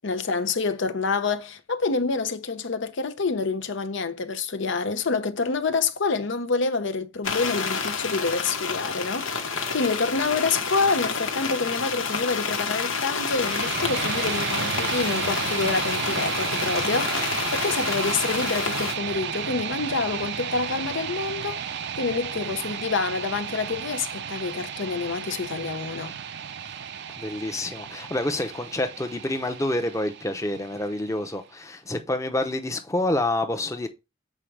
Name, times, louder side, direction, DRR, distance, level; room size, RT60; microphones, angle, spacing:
voice 1, 0.0-9.3 9.7-17.2 17.5-21.6 22.0-26.1, left 4 dB, 65° left, 0.7 m, -27 dB
sound 1, 7.2-18.9, left 5 dB, 80° left, 1.3 m, -29 dB
sound 2, 13.1-31.1, right 7 dB, 60° right, 0.5 m, -33 dB
voice 2, 27.2-33.9, left 1 dB, 15° left, 0.8 m, -28 dB
7.5 x 4.7 x 3.3 m
head